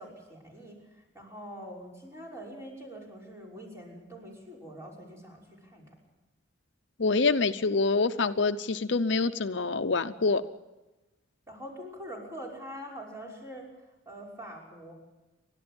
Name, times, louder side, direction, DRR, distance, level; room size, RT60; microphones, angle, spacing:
voice 1, 0.0-5.9 11.5-13.7 14.1-14.9, equal, 15° right, -2 dB, 5.7 m, -44 dB
voice 2, 7.0-10.4, left 3 dB, 65° left, 10 dB, 0.7 m, -26 dB
30.0 x 12.5 x 8.8 m, 1.1 s
head